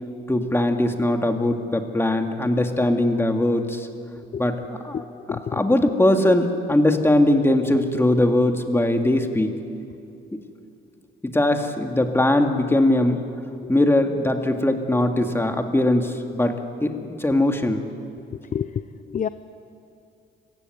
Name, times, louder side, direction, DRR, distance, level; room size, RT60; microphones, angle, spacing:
voice 1, 0.3-3.9 4.4-5.0 5.5-9.5 11.2-13.3 13.7-17.8, left 1 dB, 10° left, 5 dB, 2.1 m, -21 dB
voice 2, 4.9-5.6 13.6-13.7 18.5-19.3, left 8 dB, 40° left, 13 dB, 0.6 m, -29 dB
25.5 x 15.5 x 9.4 m, 2.5 s
cardioid pair, 90°, 20 cm